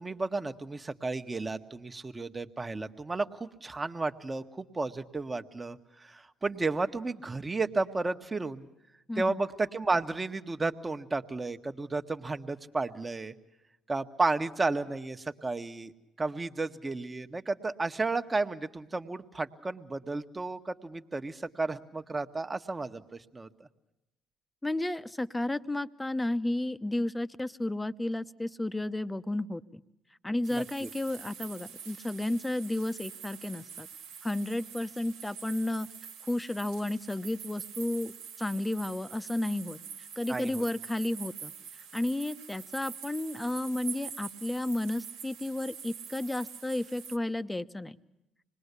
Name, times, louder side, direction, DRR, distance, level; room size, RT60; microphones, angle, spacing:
voice 1, 0.0-8.7 9.2-13.3 13.9-15.9 16.2-23.0 23.3-23.5 30.5-30.9 40.3-40.6, right 3 dB, 25° right, 7 dB, 1.4 m, -33 dB
voice 2, 9.1-9.4 24.6-29.8 30.2-33.9 34.2-35.9 36.3-41.5 41.9-48.0, left 1 dB, 10° left, 12 dB, 1.0 m, -32 dB
sound 1, 30.4-47.2, right 7 dB, 85° right, 1.5 m, -45 dB
26.0 x 20.5 x 8.3 m, 0.91 s
hypercardioid pair, 65°, 0 cm